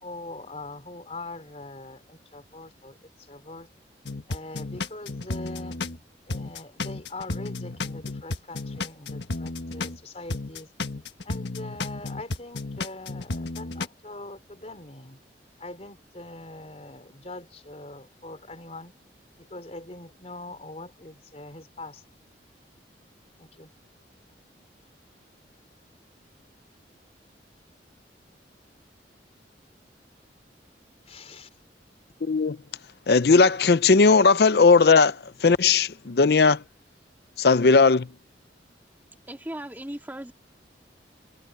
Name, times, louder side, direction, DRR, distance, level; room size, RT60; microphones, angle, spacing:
voice 1, 0.0-3.7 4.3-5.8 6.3-10.7 11.2-15.2 15.6-18.9 19.5-22.0 23.4-23.7 31.1-31.5, left 2 dB, 35° left, 3.7 m, -42 dB
sound 1, 4.1-6.0 6.3-10.0 10.3-13.9, left 3 dB, 80° left, 1.5 m, -33 dB
voice 2, 32.2-32.6 33.1-36.6 37.4-38.1, left 4 dB, 60° left, 0.5 m, -18 dB
voice 3, 39.3-40.3, right 1 dB, 10° right, 2.2 m, -36 dB
head